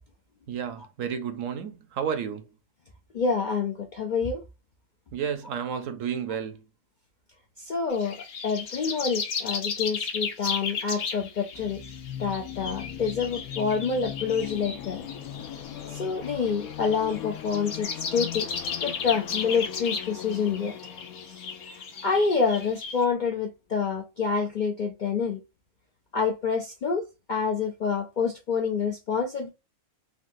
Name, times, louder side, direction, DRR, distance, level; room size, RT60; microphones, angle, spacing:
voice 1, 0.5-2.5 5.1-6.6, right 8 dB, 70° right, 0.9 m, -31 dB
voice 2, 3.1-4.4 7.6-8.2 8.4-11.8 12.2-15.0 15.9-18.5 18.8-20.7 21.3-21.4 21.7-21.8 22.0-25.4 26.1-29.5, left 5 dB, 70° left, 0.4 m, -27 dB
sound 1, 7.9-23.0, left 5 dB, 55° left, 0.8 m, -35 dB
sound 2, 11.5-23.1, left 10 dB, 85° left, 1.0 m, -40 dB
3.7 x 2.2 x 2.5 m
omnidirectional pair, 1.5 m